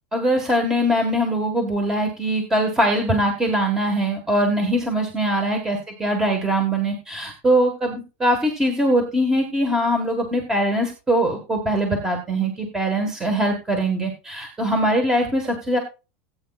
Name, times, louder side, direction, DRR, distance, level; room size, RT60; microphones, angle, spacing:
voice 1, 0.1-15.8, right 1 dB, 10° right, 3 dB, 1.6 m, -22 dB
18.5 x 8.8 x 2.4 m, 0.31 s
supercardioid pair, 170°, 6 cm